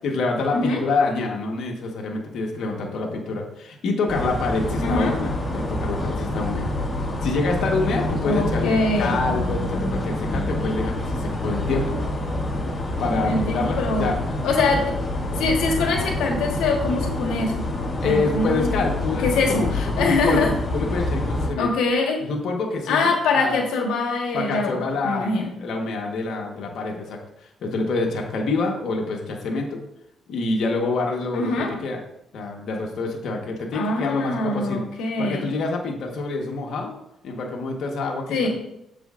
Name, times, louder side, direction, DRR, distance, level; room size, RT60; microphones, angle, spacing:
voice 1, 0.0-6.7 7.2-12.0 13.0-14.2 18.0-19.7 20.0-21.7 22.2-23.0 23.3-23.6 24.3-27.2 27.6-29.8 30.3-32.0 32.3-34.8 35.2-36.9 37.2-38.5, left 3 dB, 70° left, 1 dB, 1.3 m, -26 dB
sound 1, 4.1-21.5, left 1 dB, 30° left, 1.9 m, -27 dB
voice 2, 4.8-5.1 8.2-9.2 13.1-14.1 14.4-14.9 15.3-17.6 18.0-20.5 21.6-22.2 22.9-25.5 31.3-31.7 33.7-35.5 38.3-38.5, left 3 dB, 90° left, 1 dB, 1.3 m, -24 dB
8.9 x 7.5 x 2.5 m, 0.83 s
cardioid pair, 90°, 0 cm